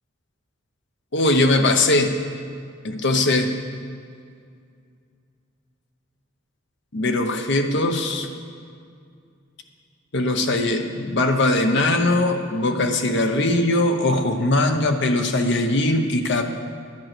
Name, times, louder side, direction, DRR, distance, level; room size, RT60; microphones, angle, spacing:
voice 1, 1.1-2.2 2.8-3.5 6.9-8.3 10.1-16.4, left 2 dB, 65° left, 5 dB, 0.9 m, -20 dB
10.5 x 9.1 x 6.1 m, 2.3 s
head